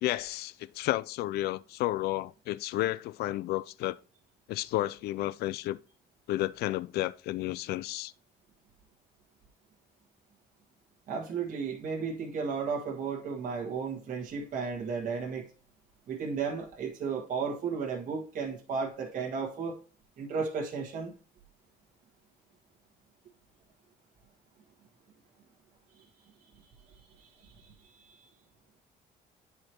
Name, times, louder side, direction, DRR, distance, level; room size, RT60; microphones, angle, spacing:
voice 1, 0.0-4.0 4.5-5.8 6.3-8.1, left 16 dB, 70° left, 0.4 m, -32 dB
voice 2, 11.1-15.5 16.1-19.8 20.2-21.1 27.2-28.3, right 5 dB, 50° right, 1.5 m, -34 dB
9.7 x 4.8 x 3.0 m
cardioid pair, 110°, 17 cm